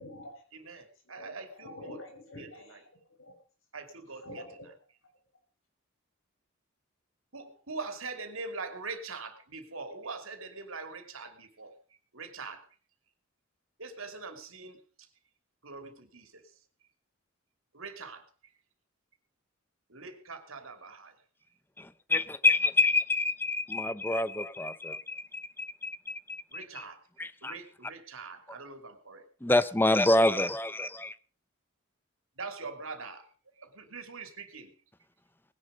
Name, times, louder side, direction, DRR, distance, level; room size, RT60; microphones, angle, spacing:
voice 1, 0.0-3.3 4.2-4.7, left 1 dB, 75° left, 6.0 m, -48 dB
voice 2, 0.6-1.9 2.4-2.5 3.7-4.2 7.3-11.7 12.1-12.6 13.8-14.8 15.6-16.3 17.7-18.2 19.9-21.1 26.5-27.0 27.4-29.2 32.4-33.2 33.6-34.7, right 4 dB, 85° right, 3.0 m, -42 dB
voice 3, 21.8-26.8 27.2-27.6 29.4-31.1, left 2 dB, 10° left, 0.7 m, -27 dB
19.5 x 10.5 x 5.3 m
head